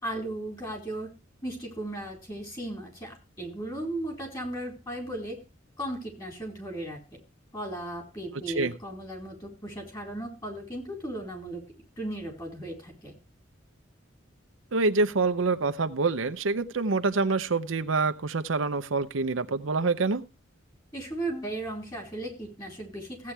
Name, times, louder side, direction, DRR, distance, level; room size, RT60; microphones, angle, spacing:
voice 1, 0.0-1.1 1.4-5.4 5.8-7.0 7.5-11.6 12.0-13.1 20.9-23.3, right 1 dB, 20° left, 1 dB, 4.3 m, -36 dB
voice 2, 14.7-20.2, right 3 dB, 80° right, 9 dB, 0.7 m, -26 dB
16.0 x 8.5 x 3.4 m, 0.29 s
head